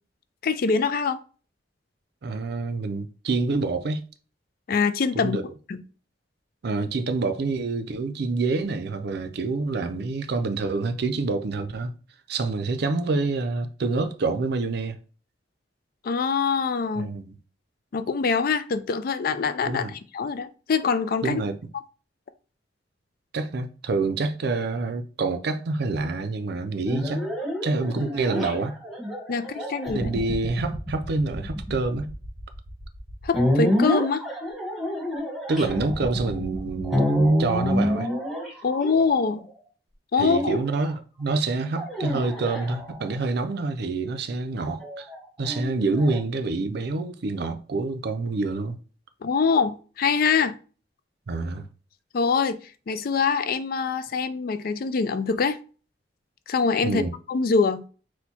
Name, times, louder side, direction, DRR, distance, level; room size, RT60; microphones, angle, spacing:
voice 1, 0.4-1.2 4.7-5.4 5.7-5.8 16.0-17.1 17.9-21.4 29.3-30.1 33.2-34.3 38.6-39.5 40.1-40.6 49.2-50.6 52.1-52.6 52.9-55.6 56.5-57.9, left 5 dB, 55° left, 0.4 m, -24 dB
voice 2, 2.2-4.0 5.1-5.4 6.6-11.9 12.3-15.0 17.0-17.3 19.6-19.9 21.2-21.6 23.3-27.3 27.6-28.7 29.9-32.1 35.5-37.0 37.4-38.1 40.2-45.1 45.4-48.8 51.3-51.7 56.8-57.1, right 3 dB, 65° right, 0.5 m, -27 dB
sound 1, 26.9-39.5 40.3-40.9 41.8-43.3 44.8-46.2, equal, ahead, 1.1 m, -28 dB
4.3 x 2.2 x 4.2 m
head